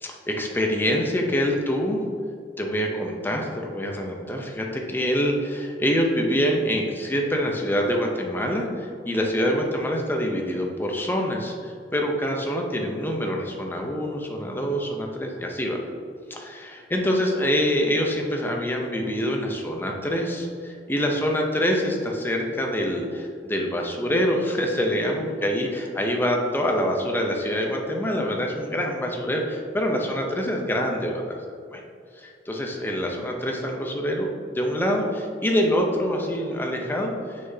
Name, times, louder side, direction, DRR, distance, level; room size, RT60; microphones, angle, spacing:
voice 1, 0.0-2.0 2.6-15.8 16.3-31.4 31.7-31.8 32.2-37.4, equal, 10° left, 1 dB, 0.7 m, -25 dB
6.3 x 5.8 x 2.8 m, 2.2 s
head